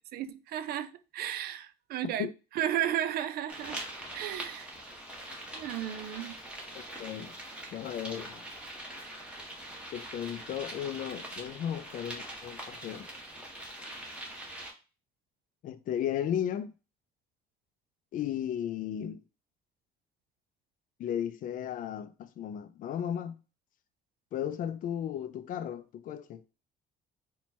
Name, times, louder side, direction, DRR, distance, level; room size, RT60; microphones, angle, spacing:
voice 1, 0.1-2.3 2.5-3.8 4.1-4.7 5.5-6.3, right 11 dB, 65° right, 0.4 m, -34 dB
sound 1, 3.5-14.7, right 1 dB, 5° right, 1.2 m, -43 dB
voice 2, 6.7-7.3 7.7-8.4 9.9-13.1 15.6-16.7 18.1-19.2 21.0-23.4 24.3-26.4, left 9 dB, 50° left, 0.4 m, -35 dB
4.2 x 2.3 x 4.3 m
cardioid pair, 110°, 17 cm